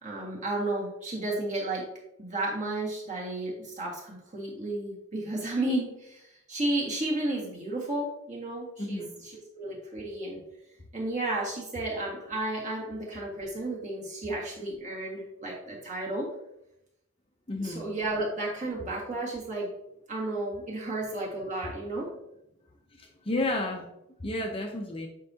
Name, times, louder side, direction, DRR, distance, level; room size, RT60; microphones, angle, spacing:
voice 1, 0.0-1.8 2.2-10.4 10.9-16.3 17.6-19.7 20.1-22.1, right 2 dB, 35° right, -3 dB, 1.7 m, -33 dB
voice 2, 8.8-9.1 17.5-17.9 22.9-23.9 24.2-25.1, left 2 dB, 25° left, 2 dB, 0.6 m, -32 dB
7.6 x 4.7 x 2.8 m, 0.83 s
head